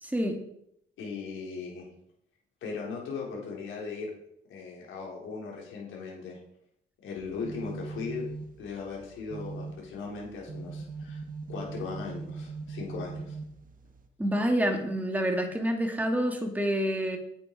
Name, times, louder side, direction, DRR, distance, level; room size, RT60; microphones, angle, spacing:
voice 1, 0.0-0.4 14.2-17.2, equal, 10° right, 3 dB, 2.4 m, -27 dB
voice 2, 1.0-1.9 2.6-4.1 4.5-6.4 7.0-8.3 8.6-11.2 11.5-13.4, left 5 dB, 85° left, -2 dB, 4.5 m, -38 dB
sound 1, 7.2-14.1, right 4 dB, 45° right, 1.4 m, -41 dB
9.1 x 9.1 x 5.0 m, 0.74 s
cardioid pair, 90°, 20 cm